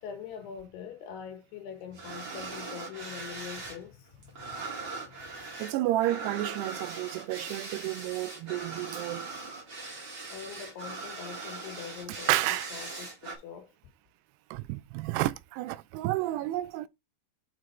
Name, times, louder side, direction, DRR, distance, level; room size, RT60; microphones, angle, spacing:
voice 1, 0.0-5.6 10.3-12.4 12.7-13.7, left 7 dB, 80° left, 3.2 m, -44 dB
sound 1, 1.9-3.8 4.1-13.4, right 3 dB, 35° right, 2.4 m, -40 dB
voice 2, 5.6-9.3 12.3-12.7 14.5-16.9, right 16 dB, 85° right, 2.6 m, -31 dB
6.3 x 4.9 x 4.3 m
omnidirectional pair, 4.6 m